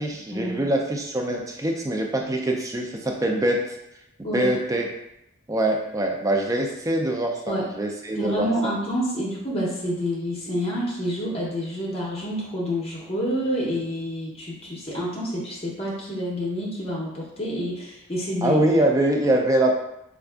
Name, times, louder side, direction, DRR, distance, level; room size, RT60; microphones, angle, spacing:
voice 1, 0.0-3.6 4.3-4.9 5.5-8.7 18.4-19.7, right 1 dB, 15° right, 1 dB, 0.3 m, -23 dB
voice 2, 8.2-18.6, equal, 30° left, -4 dB, 0.6 m, -28 dB
4.5 x 2.4 x 2.3 m, 0.84 s
head